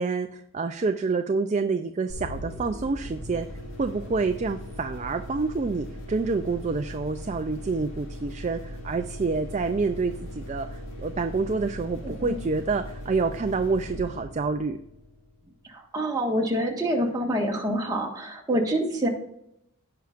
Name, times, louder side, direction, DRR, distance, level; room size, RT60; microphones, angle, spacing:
voice 1, 0.0-3.5 3.8-14.8, right 4 dB, 35° right, 7 dB, 0.4 m, -28 dB
sound 1, 2.1-15.6, equal, 65° left, 2.1 m, -39 dB
voice 2, 12.0-12.4 15.6-19.1, right 1 dB, 20° right, -1 dB, 1.6 m, -26 dB
16.0 x 5.7 x 2.5 m, 0.79 s
head